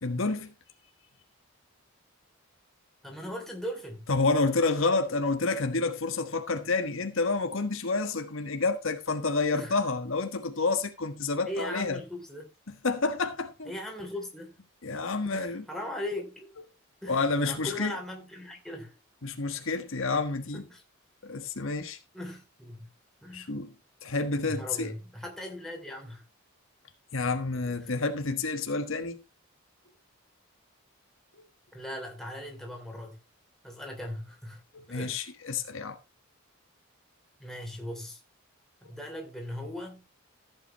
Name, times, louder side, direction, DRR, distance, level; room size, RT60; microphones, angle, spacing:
voice 1, 0.0-0.5 4.1-12.0 12.7-13.7 14.8-15.6 17.1-18.0 19.2-20.7 21.2-22.0 23.3-23.7 24.0-24.9 27.1-29.2 34.7-36.0 38.8-38.9, left 3 dB, 65° left, 1.4 m, -29 dB
voice 2, 3.0-4.0 9.5-9.8 11.5-12.5 13.7-14.5 15.3-16.5 17.0-18.9 20.7-20.8 22.1-22.9 23.2-23.5 24.4-26.2 27.5-27.9 31.7-33.2 33.6-34.6 34.9-35.2 37.4-38.2 38.8-40.0, left 1 dB, ahead, 3.0 m, -39 dB
14.5 x 8.2 x 3.0 m
head